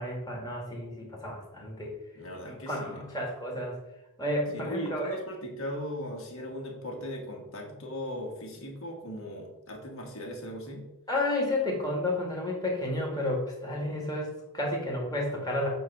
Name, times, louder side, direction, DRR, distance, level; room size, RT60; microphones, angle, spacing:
voice 1, 0.0-1.9 2.4-3.8 4.2-5.2 11.1-15.7, left 1 dB, 15° left, -2 dB, 1.6 m, -31 dB
voice 2, 2.1-3.1 4.5-10.8, equal, 60° left, 1 dB, 1.4 m, -38 dB
7.6 x 2.6 x 5.7 m, 0.92 s
head